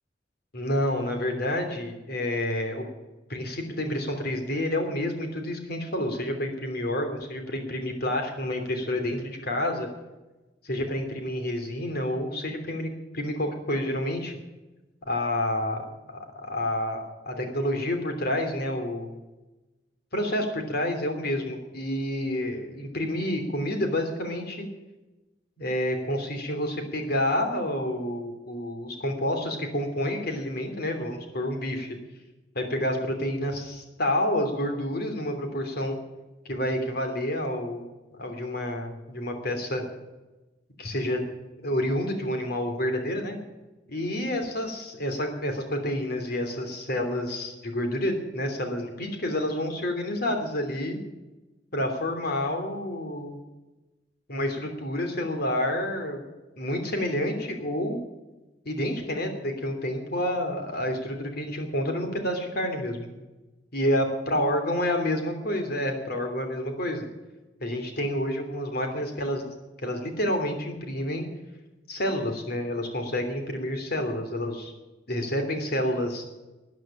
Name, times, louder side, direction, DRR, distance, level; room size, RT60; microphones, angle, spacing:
voice 1, 0.5-2.9 3.3-9.9 10.6-14.4 15.1-19.2 20.1-24.7 25.6-32.0 32.5-36.0 36.4-37.8 38.2-39.8 40.8-41.2 41.6-43.4 43.9-51.0 51.7-53.4 54.3-56.3 56.6-58.0 58.6-63.2 63.7-67.0 67.6-69.5 69.8-71.3 71.9-74.7 75.1-76.2, left 1 dB, 55° left, 5 dB, 3.0 m, -29 dB
14.0 x 9.3 x 8.8 m, 1.1 s
head